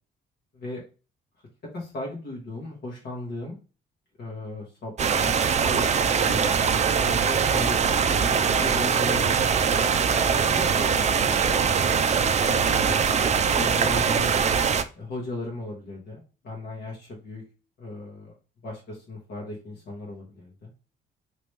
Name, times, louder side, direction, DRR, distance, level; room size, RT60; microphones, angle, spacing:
voice 1, 1.7-3.6 4.2-6.4 7.0-11.5 12.4-13.0 13.5-14.3 14.9-17.4 17.8-18.3 18.6-20.7, left 2 dB, 55° left, -2 dB, 1.3 m, -37 dB
sound 1, 5.0-14.8, right 6 dB, 35° right, 0.4 m, -22 dB
3.0 x 2.9 x 3.2 m, 0.34 s
cardioid pair, 90°, 20 cm